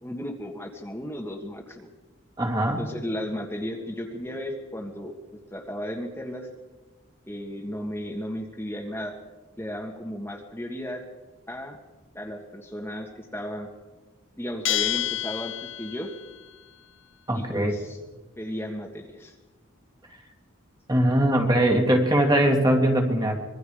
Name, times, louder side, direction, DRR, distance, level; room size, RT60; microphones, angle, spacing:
voice 1, 0.0-1.9 2.8-6.5 7.3-9.2 9.6-11.0 11.5-11.8 12.1-13.7 14.4-16.1 17.3-18.0 18.4-19.4, equal, 10° left, 0 dB, 1.7 m, -35 dB
voice 2, 2.4-2.8 17.3-17.7 20.9-23.4, right 1 dB, 20° right, 2 dB, 2.4 m, -21 dB
Bell, 14.6-16.2, left 13 dB, 60° left, 0.7 m, -28 dB
26.0 x 22.0 x 5.1 m, 1.2 s
head